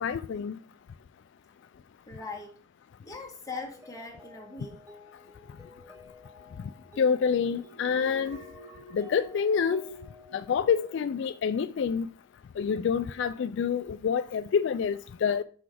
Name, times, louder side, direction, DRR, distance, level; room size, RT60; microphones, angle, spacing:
voice 1, 0.0-0.6 7.0-8.4 8.9-9.9 10.3-12.1 12.6-15.4, left 6 dB, 65° left, 0.3 m, -27 dB
voice 2, 2.1-2.6 3.0-4.8, left 3 dB, 15° left, 1.7 m, -40 dB
Mallet percussion, 3.5-11.6, left 2 dB, 15° right, 0.7 m, -53 dB
Alarm, 7.7-11.1 11.4-11.8, left 1 dB, 55° right, 3.8 m, -48 dB
6.2 x 5.8 x 4.8 m
head